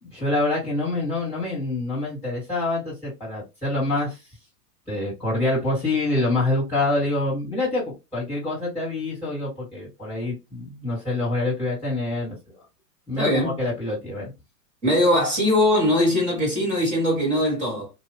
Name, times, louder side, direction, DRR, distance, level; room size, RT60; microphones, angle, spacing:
voice 1, 0.0-4.2 4.9-12.4 13.1-14.3, left 2 dB, 5° left, 1.8 m, -26 dB
voice 2, 13.1-13.6 14.8-17.9, left 1 dB, 15° right, 1.5 m, -21 dB
2.8 x 2.4 x 3.2 m
hypercardioid pair, 150°, 48 cm